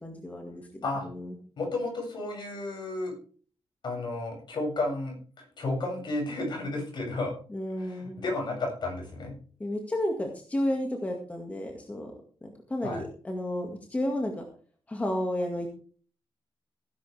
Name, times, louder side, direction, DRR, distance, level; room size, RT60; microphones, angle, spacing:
voice 1, 0.0-0.6 1.1-1.4 7.5-8.2 9.6-12.1 12.4-14.4 14.9-15.7, left 1 dB, 15° left, 2 dB, 2.0 m, -32 dB
voice 2, 1.6-3.1 3.8-7.3 7.7-9.3 12.8-13.1, left 2 dB, 55° left, 0 dB, 7.3 m, -32 dB
17.0 x 10.5 x 3.5 m, 0.42 s
wide cardioid pair, 175°, 9 cm